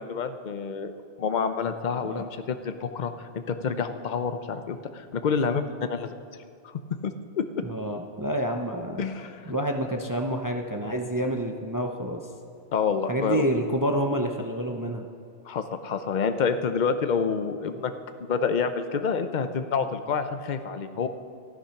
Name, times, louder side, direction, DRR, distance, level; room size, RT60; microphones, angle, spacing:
voice 1, 0.0-6.1 6.6-6.7 7.0-7.4 9.0-9.5 12.7-13.5 15.4-17.9 18.2-21.1, left 6 dB, 45° left, 9 dB, 0.7 m, -28 dB
voice 2, 7.6-9.0 9.5-12.2 13.0-15.1, right 1 dB, 20° right, 3 dB, 0.6 m, -28 dB
13.0 x 11.5 x 5.8 m, 2.3 s
omnidirectional pair, 1.2 m